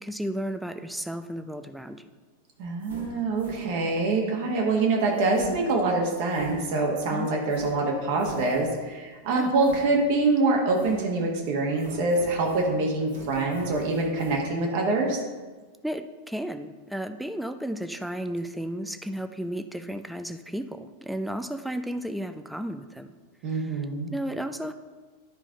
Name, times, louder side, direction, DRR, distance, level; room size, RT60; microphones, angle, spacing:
voice 1, 0.0-2.0 7.1-7.3 9.3-9.5 15.8-23.1 23.5-23.8 24.1-24.7, equal, ahead, 8 dB, 0.4 m, -33 dB
voice 2, 2.6-15.2 23.4-24.1, right 3 dB, 50° right, 0 dB, 1.4 m, -25 dB
sound 1, 2.6-4.1 5.1-7.0 7.5-8.9 9.6-10.4 10.7-11.4 11.8-14.4, right 1 dB, 70° right, 1.5 m, -45 dB
10.5 x 4.8 x 3.8 m, 1.3 s
figure-of-eight pair, 90°, 0 cm